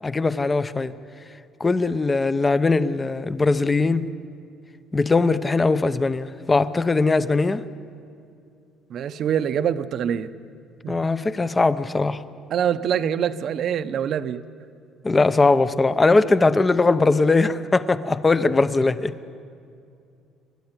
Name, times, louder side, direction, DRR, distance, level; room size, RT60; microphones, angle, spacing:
voice 1, 0.0-0.9 1.6-4.1 4.9-7.6 10.9-12.2 15.0-19.1, left 3 dB, 15° left, 13 dB, 0.7 m, -20 dB
voice 2, 8.9-10.3 10.8-11.0 12.5-14.4, right 9 dB, 50° right, 11 dB, 0.8 m, -24 dB
28.5 x 13.0 x 9.7 m, 2.5 s
cardioid pair, 140°, 0 cm